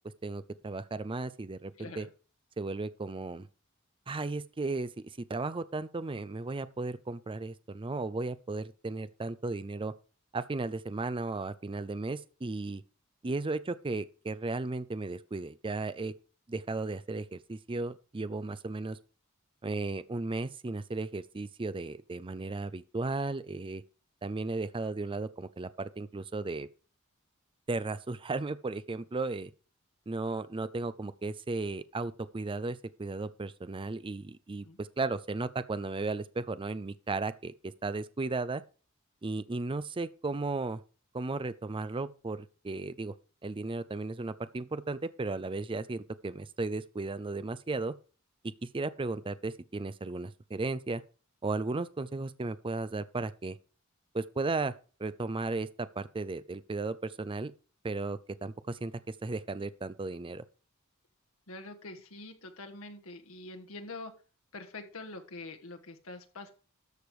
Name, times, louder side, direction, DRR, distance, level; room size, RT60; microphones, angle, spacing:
voice 1, 0.2-2.1 2.6-3.5 4.1-4.9 5.3-9.9 10.3-12.8 13.2-16.1 16.5-19.0 19.6-23.8 24.2-26.7 27.7-29.5 30.1-38.6 39.2-40.8 41.1-43.1 43.4-47.9 48.4-51.0 51.4-53.6 54.1-54.7 55.0-57.5 57.8-60.4, right 3 dB, 25° right, 0.5 m, -35 dB
voice 2, 1.8-2.1 34.6-34.8 61.5-64.1 64.5-66.5, left 2 dB, 85° left, 1.5 m, -45 dB
13.0 x 5.1 x 4.8 m
head